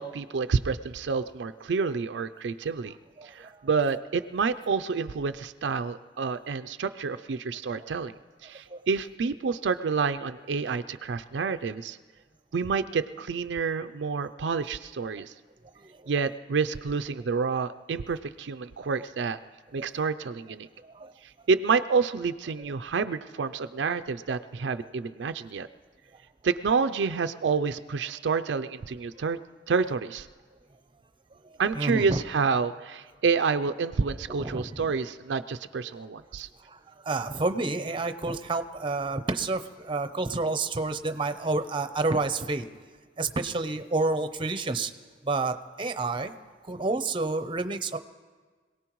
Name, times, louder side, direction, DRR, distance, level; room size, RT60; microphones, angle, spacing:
voice 1, 0.0-3.0 3.2-8.1 8.4-12.0 12.5-15.3 16.1-19.4 19.7-20.7 21.5-25.7 26.4-29.4 29.7-30.3 31.6-36.5, right 5 dB, 75° right, 10 dB, 0.4 m, -28 dB
voice 2, 3.2-3.7 8.7-8.8 15.8-16.1 19.8-19.9 20.8-21.1 31.4-32.2 34.3-34.9 36.7-42.7 43.2-44.9 45.2-46.3 46.6-48.0, right 3 dB, 30° right, 9 dB, 0.7 m, -30 dB
26.0 x 18.0 x 3.1 m, 1.4 s
head